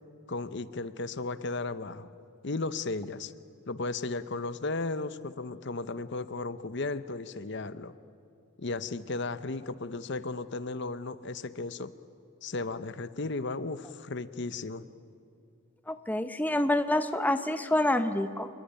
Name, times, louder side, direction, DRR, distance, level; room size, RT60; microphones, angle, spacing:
voice 1, 0.3-2.1 2.4-3.3 3.7-7.9 8.6-11.9 12.4-14.9, left 3 dB, 55° left, 13 dB, 0.8 m, -35 dB
voice 2, 15.9-18.5, left 1 dB, 10° left, 9 dB, 0.8 m, -27 dB
27.5 x 21.0 x 9.9 m, 2.5 s
head